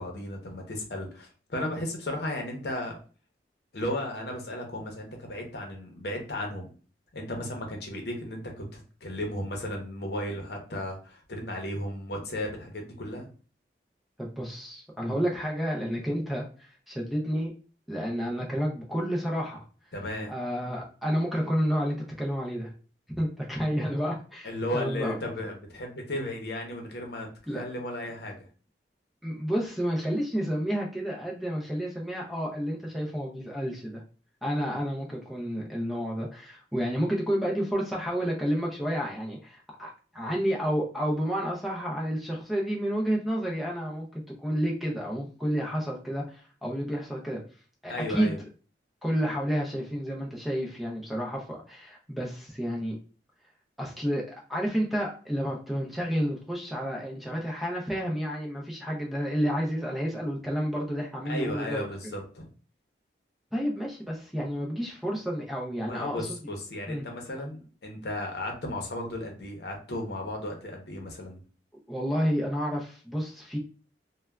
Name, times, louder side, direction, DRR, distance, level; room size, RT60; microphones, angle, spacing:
voice 1, 0.0-3.0 3.7-6.7 7.1-13.3 19.9-20.3 24.4-27.3 27.5-28.4 47.9-48.4 61.2-62.5 65.9-71.4, left 1 dB, 65° left, 2 dB, 0.7 m, -35 dB
voice 2, 14.2-17.5 17.9-19.6 20.3-22.7 23.1-25.2 27.5-27.6 29.2-34.0 34.4-44.1 44.4-47.4 47.8-48.3 49.0-53.0 53.8-54.2 54.5-61.8 63.5-66.4 66.9-67.0 67.4-67.5 71.9-73.6, equal, ahead, -2 dB, 0.4 m, -30 dB
3.2 x 2.2 x 2.2 m, 0.38 s
head